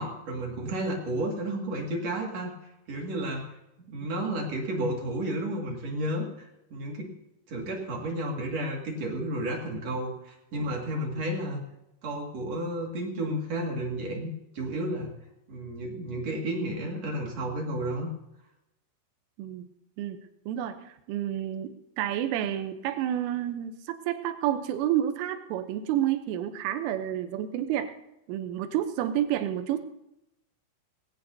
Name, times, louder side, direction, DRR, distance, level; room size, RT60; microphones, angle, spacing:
voice 1, 0.0-2.5 2.9-3.4 3.9-7.1 7.5-11.6 12.0-14.3 14.5-15.1 15.5-18.1, right 1 dB, 45° right, 0 dB, 2.4 m, -32 dB
voice 2, 20.5-27.9 28.3-29.8, right 11 dB, 90° right, 8 dB, 3.4 m, -30 dB
19.5 x 17.5 x 2.7 m, 0.87 s
omnidirectional pair, 5.5 m